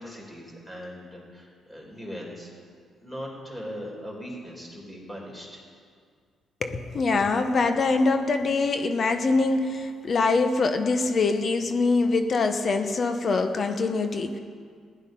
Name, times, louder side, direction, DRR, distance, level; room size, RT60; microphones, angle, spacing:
voice 1, 0.0-2.5 3.0-5.6, equal, 10° left, -2 dB, 4.1 m, -39 dB
voice 2, 6.6-14.4, left 3 dB, 45° left, 7 dB, 0.9 m, -24 dB
16.0 x 10.5 x 5.4 m, 2.1 s
cardioid pair, 90°, 0 cm